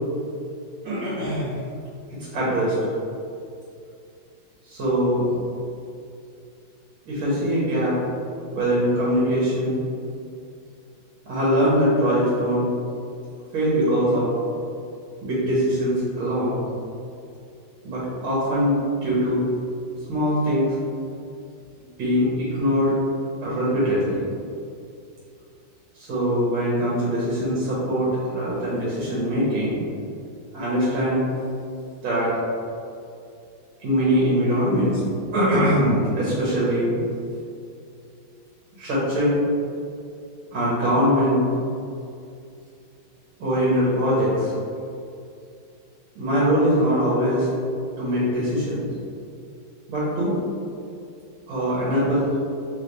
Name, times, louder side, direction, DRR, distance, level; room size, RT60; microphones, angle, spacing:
voice 1, 0.8-1.6 2.3-2.8 4.7-5.3 7.1-8.0 8.5-9.8 11.3-12.7 13.5-14.3 15.2-16.6 17.8-19.5 20.1-20.7 22.0-22.9 23.4-24.2 26.0-29.8 30.5-31.3 32.0-32.4 33.8-35.0 35.3-36.9 38.8-39.4 40.5-41.5 43.4-44.5 46.2-47.5 48.0-48.9 49.9-50.4 51.5-52.3, equal, 70° right, -8 dB, 2.0 m, -22 dB
4.1 x 3.3 x 4.0 m, 2.5 s
omnidirectional pair, 2.3 m